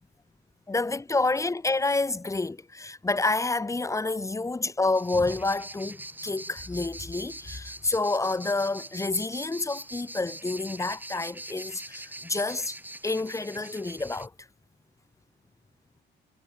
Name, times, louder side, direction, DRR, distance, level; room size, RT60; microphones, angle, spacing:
voice 1, 0.7-12.8 13.0-14.3, left 3 dB, 15° left, 0.9 m, -28 dB
sound 1, 4.9-14.3, right 1 dB, 10° right, 3.7 m, -43 dB
cardioid pair, 90°, 20 cm